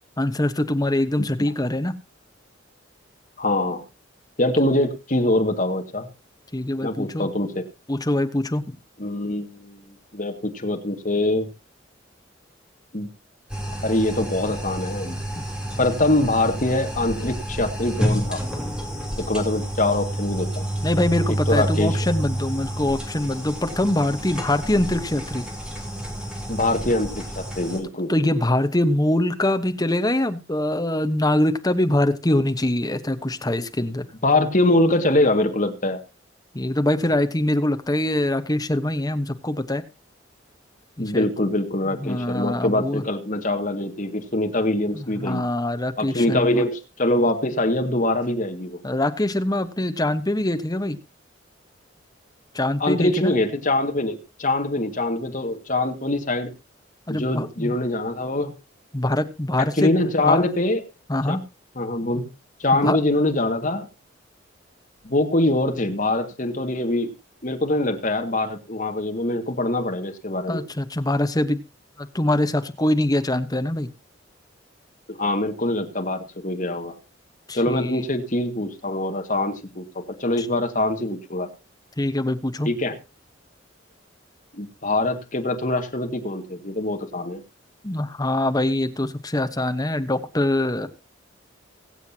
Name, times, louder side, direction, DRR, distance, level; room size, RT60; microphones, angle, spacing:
voice 1, 0.2-1.9 6.5-7.3 7.9-8.8 15.3-15.4 20.8-25.4 28.1-34.1 36.5-39.8 41.0-41.3 42.0-43.0 44.9-46.6 48.8-51.0 52.5-53.3 57.1-57.7 58.9-59.9 60.3-60.4 61.1-61.4 62.7-63.0 70.5-71.6 72.0-73.9 77.5-78.0 80.4-80.5 82.0-82.7 87.8-90.9, left 1 dB, 20° left, 8 dB, 1.1 m, -23 dB
voice 2, 3.4-3.8 4.4-6.1 6.8-7.6 9.0-11.5 12.9-13.1 13.8-15.2 15.8-18.4 19.2-20.7 21.3-22.0 26.5-28.1 34.2-36.0 41.0-45.4 46.0-48.8 52.8-56.5 57.1-58.5 59.6-60.8 61.3-61.4 61.8-62.3 62.6-63.9 65.0-67.1 67.4-70.6 75.1-77.0 77.5-81.5 82.6-83.0 84.5-87.4, left 1 dB, 40° left, 5 dB, 2.0 m, -23 dB
sound 1, 13.5-27.8, right 1 dB, 5° right, 3.4 m, -29 dB
23.5 x 8.0 x 2.9 m, 0.27 s
head